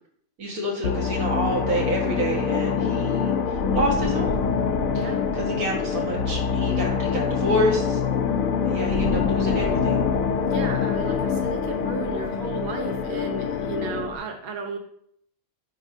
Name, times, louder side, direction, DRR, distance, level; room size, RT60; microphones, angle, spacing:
voice 1, 0.4-4.4 4.9-8.0 8.6-10.0, equal, 90° right, -1 dB, 2.0 m, -28 dB
sound 1, 0.8-14.2, left 6 dB, 75° left, 1.1 m, -25 dB
voice 2, 4.9-5.2 10.4-14.8, right 3 dB, 45° right, 4 dB, 1.0 m, -33 dB
9.6 x 4.8 x 2.7 m, 0.68 s
omnidirectional pair, 1.5 m